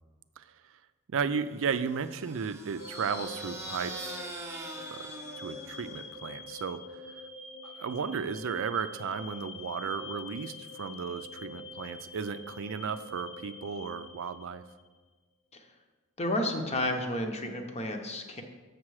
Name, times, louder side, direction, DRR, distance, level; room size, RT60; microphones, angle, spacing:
voice 1, 1.1-4.2 4.9-5.1 5.4-7.0 7.6-14.6, right 6 dB, 65° right, 12 dB, 0.4 m, -34 dB
sound 1, 1.7-6.2, right 2 dB, 10° right, 0.7 m, -44 dB
sound 2, 2.8-14.9, left 2 dB, 75° left, 1.3 m, -45 dB
voice 2, 16.2-18.4, left 1 dB, 30° left, 5 dB, 0.8 m, -31 dB
7.3 x 6.7 x 4.8 m, 1.3 s
head